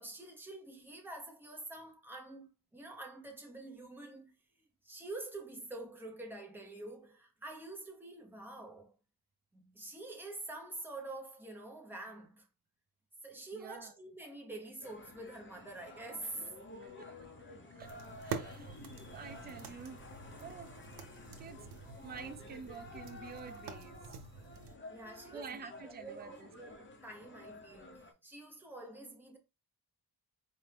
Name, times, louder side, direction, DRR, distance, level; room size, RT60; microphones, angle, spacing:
voice 1, 0.0-4.3 4.8-8.9 9.5-12.5 13.2-16.6 18.2-18.3 24.9-29.4, right 2 dB, 5° right, 0.8 m, -47 dB
voice 2, 13.5-13.9 16.8-17.3 17.7-17.9 18.2-18.8 19.1-20.0 20.4-20.8 21.4-21.7 22.0-24.2 25.3-26.5, right 6 dB, 25° right, 0.4 m, -49 dB
sound 1, 14.8-28.1, left 2 dB, 30° left, 0.7 m, -52 dB
sound 2, 17.8-24.8, right 6 dB, 80° right, 0.7 m, -47 dB
4.3 x 2.6 x 3.3 m
wide cardioid pair, 155°, 39 cm